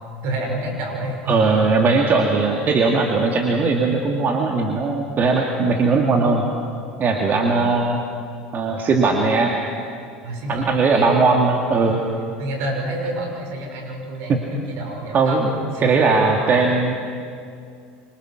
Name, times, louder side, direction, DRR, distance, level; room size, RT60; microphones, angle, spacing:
voice 1, 0.2-1.9 7.1-7.6 10.2-11.1 11.9-12.0 12.4-16.2, right 1 dB, 65° right, 1 dB, 6.1 m, -29 dB
voice 2, 1.3-6.4 7.0-8.0 8.5-9.5 10.5-12.0 14.3-14.4 15.1-15.5 15.8-16.9, right 4 dB, 40° right, 1 dB, 2.6 m, -19 dB
26.5 x 25.0 x 6.3 m, 2.3 s
hypercardioid pair, 80°, 5 cm